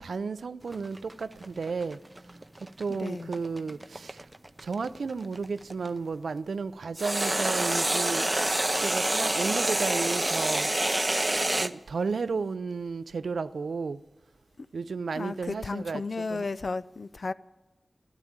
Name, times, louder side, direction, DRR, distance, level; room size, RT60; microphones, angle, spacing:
voice 1, 0.0-2.0 2.8-4.3 4.6-8.5 8.8-10.7 11.5-14.0 14.7-16.5, right 4 dB, 90° right, 0.5 m, -33 dB
sound 1, 0.7-5.9 7.0-11.7, right 1 dB, 25° right, 0.6 m, -27 dB
voice 2, 2.9-3.3 14.6-14.7 15.2-17.3, left 3 dB, 60° left, 0.5 m, -34 dB
13.0 x 11.5 x 8.8 m
cardioid pair, 50°, 0 cm